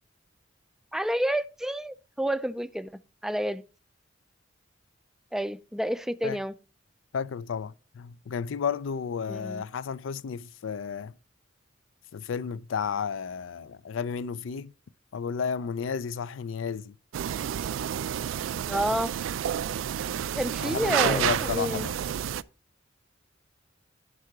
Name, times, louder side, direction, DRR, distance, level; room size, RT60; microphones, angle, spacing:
voice 1, 0.9-3.6 5.3-6.5 9.3-9.6 18.7-19.1 20.4-21.9, equal, ahead, 0.3 m, -29 dB
voice 2, 7.1-11.1 12.1-14.7 15.1-17.0 20.6-22.0, left 6 dB, 85° left, 0.4 m, -32 dB
sound 1, 17.1-22.4, right 9 dB, 85° right, 0.3 m, -30 dB
11.0 x 4.7 x 4.8 m
head